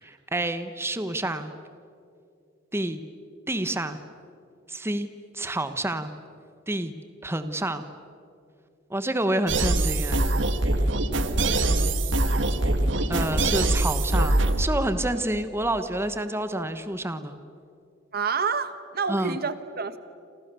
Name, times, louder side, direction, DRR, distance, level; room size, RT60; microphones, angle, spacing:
voice 1, 0.0-1.5 2.7-3.0 3.5-4.0 4.7-5.1 5.3-6.1 6.7-6.9 7.2-7.9 8.9-10.2 13.1-17.4 19.1-19.4, right 1 dB, 15° right, 10 dB, 1.2 m, -28 dB
sound 1, 9.5-14.7, right 2 dB, 75° right, 1.7 m, -23 dB
voice 2, 11.4-11.8 18.1-20.0, right 5 dB, 55° right, 12 dB, 1.3 m, -29 dB
29.5 x 27.5 x 7.0 m, 2.4 s
head